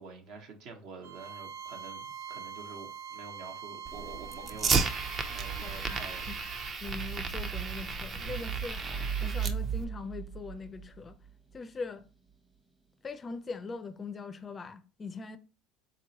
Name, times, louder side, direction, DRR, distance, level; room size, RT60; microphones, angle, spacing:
voice 1, 0.0-4.9 5.3-6.3, right 4 dB, 65° right, 1.0 m, -47 dB
Bowed string instrument, 1.0-6.8, right 7 dB, 80° right, 0.4 m, -44 dB
Fire, 3.8-9.8, right 5 dB, 40° right, 0.6 m, -33 dB
voice 2, 5.6-6.0 6.3-6.4 6.8-11.2 11.5-12.0 13.0-15.4, left 4 dB, 30° left, 0.4 m, -41 dB
sound 1, 8.7-11.3, right 7 dB, 15° right, 0.9 m, -35 dB
4.0 x 2.9 x 2.9 m
supercardioid pair, 90°, 0 cm